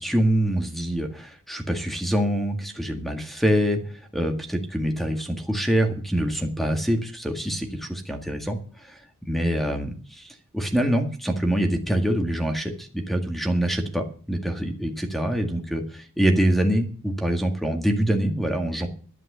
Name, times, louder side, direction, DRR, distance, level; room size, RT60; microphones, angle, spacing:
voice 1, 0.0-3.8 4.1-8.6 8.9-18.9, equal, ahead, 4 dB, 1.8 m, -25 dB
11.0 x 11.0 x 6.8 m, 0.42 s
head